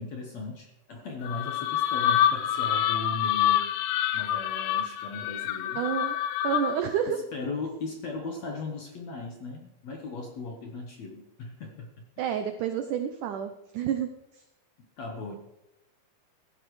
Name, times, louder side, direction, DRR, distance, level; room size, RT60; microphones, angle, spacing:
voice 1, 0.0-3.7 4.1-5.8 7.1-11.9 15.0-15.3, left 3 dB, 65° left, 2 dB, 1.8 m, -37 dB
sound 1, 1.2-6.9, left 11 dB, 85° left, 2.6 m, -27 dB
voice 2, 5.8-6.2 6.4-7.2 12.2-14.1 14.3-14.4, right 8 dB, 85° right, 7 dB, 1.8 m, -29 dB
15.0 x 15.0 x 3.2 m, 0.91 s
omnidirectional pair, 4.5 m